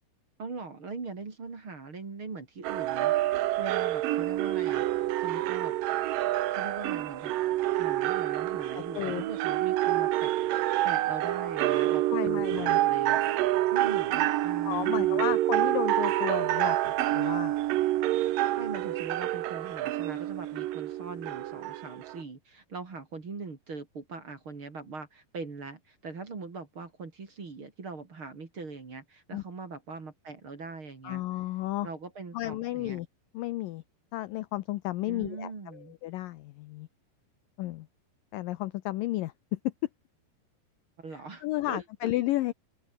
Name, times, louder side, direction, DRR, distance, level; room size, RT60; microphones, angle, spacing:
voice 1, 0.4-5.7 6.5-13.2 13.7-15.2 18.6-31.2 31.8-33.0 35.1-35.9 41.0-42.1, right 4 dB, 35° right, 3.5 m, -41 dB
sound 1, 2.6-22.2, right 15 dB, 70° right, 2.3 m, -28 dB
voice 2, 8.8-9.2 12.1-12.8 14.6-17.6 29.3-29.4 31.0-31.9 32.3-33.1 33.3-33.8 34.1-36.9 37.6-37.9 38.3-39.7 41.4-42.5, left 16 dB, 80° left, 2.0 m, -33 dB
omnidirectional pair, 4.8 m